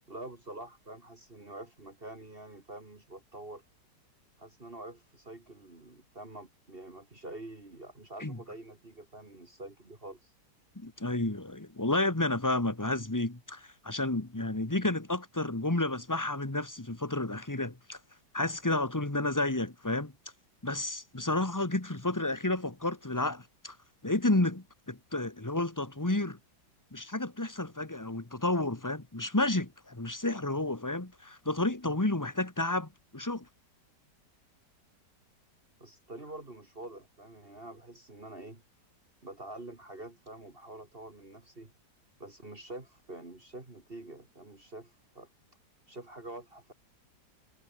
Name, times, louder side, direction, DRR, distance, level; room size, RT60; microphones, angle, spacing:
voice 1, 0.1-3.6 4.4-10.3 35.8-38.6 39.2-41.7 42.2-45.3 45.9-46.7, right 1 dB, 30° right, 2.9 m, -46 dB
voice 2, 10.7-18.0 18.3-20.1 20.6-23.7 24.0-26.4 26.9-33.5, left 2 dB, 10° left, 1.7 m, -31 dB
omnidirectional pair, 1.9 m